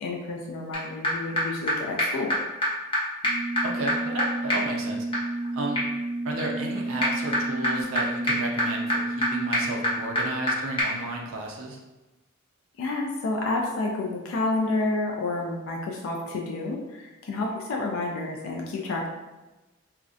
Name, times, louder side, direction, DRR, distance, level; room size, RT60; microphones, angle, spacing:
voice 1, 0.0-2.4 12.8-19.1, left 2 dB, 70° left, -1 dB, 0.3 m, -29 dB
sound 1, 0.7-0.8 1.0-1.1 1.4-1.5 1.7-1.8 2.0-2.1 2.3-2.4 2.6-2.7 2.9-3.0 3.2-10.5 10.8-10.9, equal, 25° left, 0.6 m, -27 dB
voice 2, 3.6-5.1 5.5-5.8 6.2-11.8, right 2 dB, 70° right, 0 dB, 0.4 m, -33 dB
2.4 x 2.1 x 2.5 m, 1.1 s
head